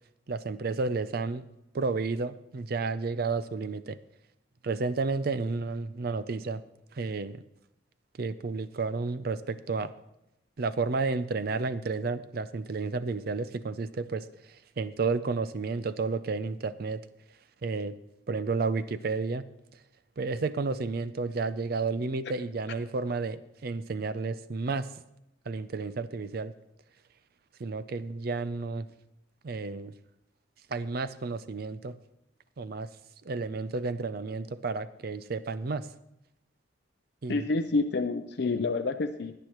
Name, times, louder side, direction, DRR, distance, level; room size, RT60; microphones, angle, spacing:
voice 1, 0.3-1.5 1.7-4.0 4.6-6.6 7.0-7.4 8.2-9.9 10.6-14.2 14.8-17.0 17.6-18.0 18.3-19.4 20.2-24.9 25.5-26.5 27.6-28.9 29.4-29.9 30.7-31.9 32.6-32.9 33.2-35.9 37.2-37.4, right 4 dB, 55° right, 13 dB, 0.5 m, -31 dB
voice 2, 37.3-39.3, left 3 dB, 60° left, 7 dB, 0.5 m, -28 dB
17.0 x 9.6 x 3.0 m, 0.82 s
head